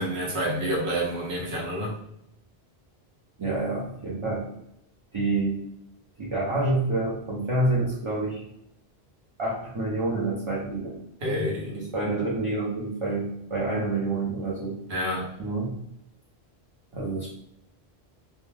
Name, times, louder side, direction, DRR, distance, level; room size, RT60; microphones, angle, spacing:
voice 1, 0.0-1.9 11.2-11.8 14.9-15.3, equal, 75° right, -3 dB, 1.0 m, -28 dB
voice 2, 3.4-4.5 5.1-5.6 6.2-8.4 9.4-11.0 11.6-14.8 15.4-15.8 16.9-17.3, right 2 dB, 40° right, -7 dB, 0.5 m, -28 dB
2.2 x 2.2 x 3.2 m, 0.81 s
omnidirectional pair, 1.1 m